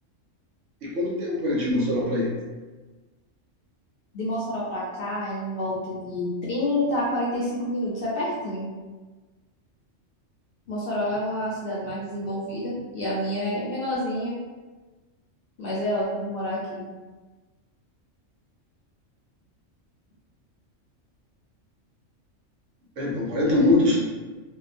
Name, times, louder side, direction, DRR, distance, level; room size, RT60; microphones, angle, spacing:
voice 1, 0.8-2.3 23.0-24.0, left 1 dB, 75° right, -5 dB, 1.1 m, -23 dB
voice 2, 4.1-8.6 10.7-14.4 15.6-16.8, left 1 dB, 55° left, -6 dB, 0.7 m, -28 dB
2.7 x 2.2 x 2.5 m, 1.3 s
omnidirectional pair, 1.3 m